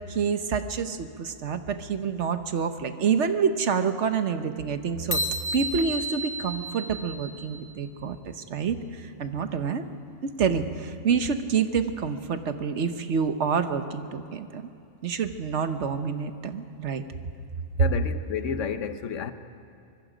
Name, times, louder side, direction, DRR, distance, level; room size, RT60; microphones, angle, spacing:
voice 1, 0.0-5.2 5.5-9.8 10.2-14.6 15.0-17.0, right 6 dB, 70° right, 1.3 m, -27 dB
sound 1, 5.1-7.7, right 1 dB, 20° left, 1.0 m, -32 dB
voice 2, 17.8-19.3, left 7 dB, 90° left, 1.3 m, -31 dB
25.0 x 22.0 x 5.1 m
omnidirectional pair, 1.2 m